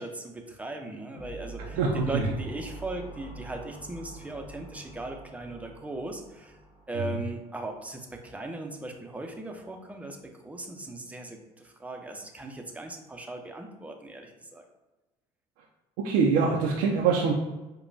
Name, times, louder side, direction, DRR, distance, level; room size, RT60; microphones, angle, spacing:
voice 1, 0.0-6.6 6.9-14.6, right 2 dB, 10° right, 2 dB, 0.6 m, -38 dB
sound 1, 1.2-7.6, right 2 dB, 15° left, 1.4 m, -45 dB
voice 2, 1.7-2.3 6.9-7.2 16.0-17.3, right 5 dB, 85° right, -2 dB, 0.5 m, -24 dB
4.9 x 2.3 x 2.6 m, 1.1 s
supercardioid pair, 75°, 15 cm